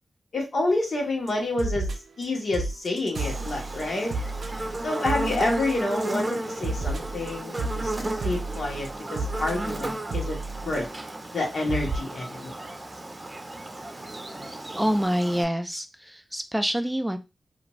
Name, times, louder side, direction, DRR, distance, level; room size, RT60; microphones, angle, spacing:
voice 1, 0.3-1.9 2.2-4.1 4.8-7.9 8.2-10.4 10.7-10.9 11.3-12.5, left 2 dB, 70° left, 0 dB, 1.0 m, -28 dB
sound 1, 1.3-1.4 1.6-2.2 2.5-6.0 6.3-11.1 11.4-11.5 11.7-12.0, right 2 dB, 75° right, 0.4 m, -32 dB
Buzz, 3.2-15.4, right 1 dB, 30° right, 0.7 m, -34 dB
voice 2, 14.8-17.2, equal, 5° right, 8 dB, 0.3 m, -26 dB
2.4 x 2.3 x 3.0 m, 0.26 s
cardioid pair, 65°, 0 cm